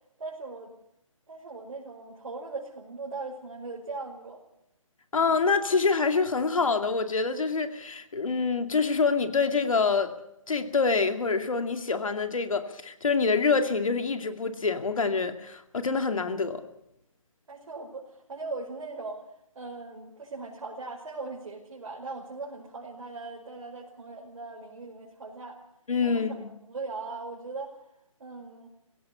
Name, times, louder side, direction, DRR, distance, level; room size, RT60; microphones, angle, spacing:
voice 1, 0.2-0.7 1.3-4.4 17.5-19.2 19.6-25.6 26.0-27.8 28.2-28.7, right 3 dB, 65° right, -3 dB, 5.3 m, -39 dB
voice 2, 5.1-10.1 10.5-16.6 25.9-26.5, left 4 dB, 70° left, 7 dB, 2.4 m, -26 dB
19.5 x 16.5 x 8.4 m, 0.81 s
figure-of-eight pair, 150°, 18 cm